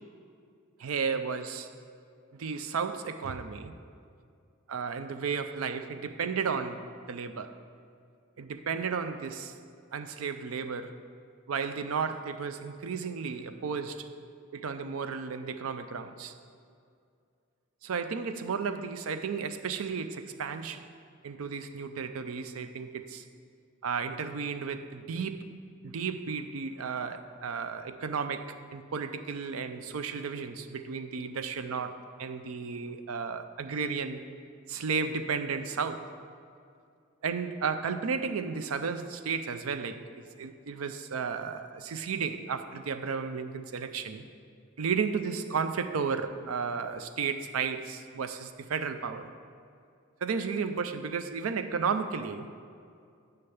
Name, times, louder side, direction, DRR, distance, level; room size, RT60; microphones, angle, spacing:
voice 1, 0.8-1.7 2.3-3.8 4.7-7.5 8.4-9.5 9.9-11.0 11.5-14.1 14.5-16.3 17.8-20.9 21.2-23.2 23.8-25.5 25.8-34.2 34.7-36.1 37.2-44.2 44.8-49.3 50.2-52.5, right 5 dB, 75° right, 10 dB, 0.5 m, -33 dB
6.7 x 5.7 x 7.0 m, 2.4 s
head